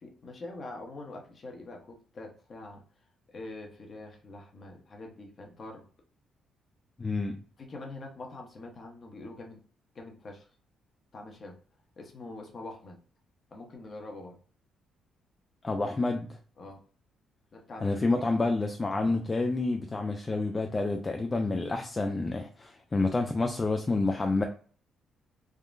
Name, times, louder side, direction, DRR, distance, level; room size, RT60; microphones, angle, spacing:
voice 1, 0.0-2.8 3.3-5.8 7.6-9.6 9.9-10.5 11.1-11.6 12.0-13.0 13.5-14.4 16.6-16.8 17.5-18.3, left 2 dB, 45° left, 2 dB, 0.8 m, -44 dB
voice 2, 7.0-7.4 15.6-16.4 17.8-24.4, left 3 dB, 25° left, 4 dB, 0.3 m, -28 dB
3.6 x 2.1 x 2.5 m, 0.43 s
cardioid pair, 90°, 0 cm